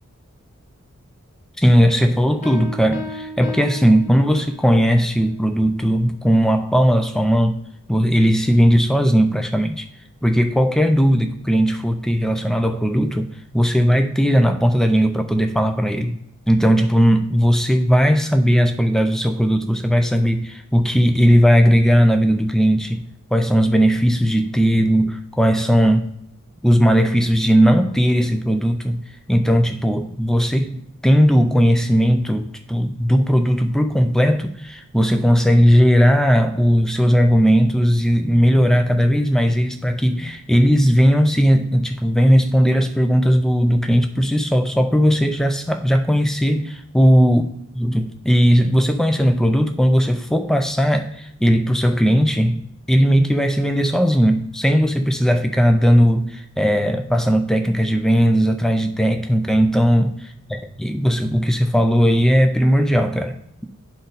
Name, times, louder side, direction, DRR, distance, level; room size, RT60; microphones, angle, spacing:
voice 1, 1.6-7.6 7.9-9.8 10.2-13.3 13.5-16.2 16.5-23.0 23.3-26.1 26.6-47.4 47.8-52.6 52.9-60.1 60.5-63.4, equal, ahead, 7 dB, 0.3 m, -17 dB
sound 1, 2.4-4.8, left 2 dB, 30° left, 1.1 m, -34 dB
10.5 x 4.0 x 3.9 m, 0.75 s
head